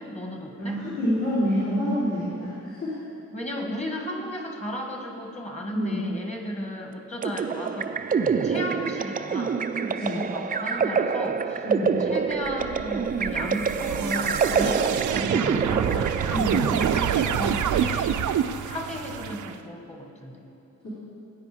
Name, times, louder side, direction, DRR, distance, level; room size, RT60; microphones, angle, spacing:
voice 1, 0.0-0.8 3.3-9.6 10.0-11.6 12.0-18.2 18.6-20.5, equal, 20° left, 1 dB, 1.6 m, -34 dB
voice 2, 0.6-3.0 5.7-6.0 9.8-10.2 11.6-12.0 15.2-15.3 16.3-16.6 20.8-20.9, equal, 65° left, -10 dB, 3.8 m, -27 dB
sound 1, 7.2-17.7, right 5 dB, 30° right, 0.4 m, -27 dB
sound 2, 12.4-19.5, right 9 dB, 80° right, 0.6 m, -27 dB
18.0 x 9.4 x 5.0 m, 2.8 s
wide cardioid pair, 170°, 30 cm